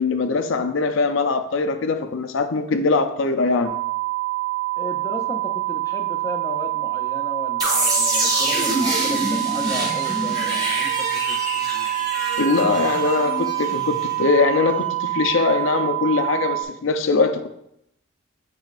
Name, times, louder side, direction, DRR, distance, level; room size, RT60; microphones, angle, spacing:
voice 1, 0.0-3.7 12.4-17.5, left 4 dB, 65° left, 7 dB, 0.5 m, -21 dB
sound 1, 3.6-16.6, right 20 dB, 65° right, 0.5 m, -26 dB
voice 2, 4.8-11.9, left 1 dB, 15° left, 3 dB, 0.5 m, -34 dB
sound 2, 7.6-14.4, right 1 dB, 20° right, 1.3 m, -25 dB
7.4 x 6.1 x 2.5 m, 0.78 s
head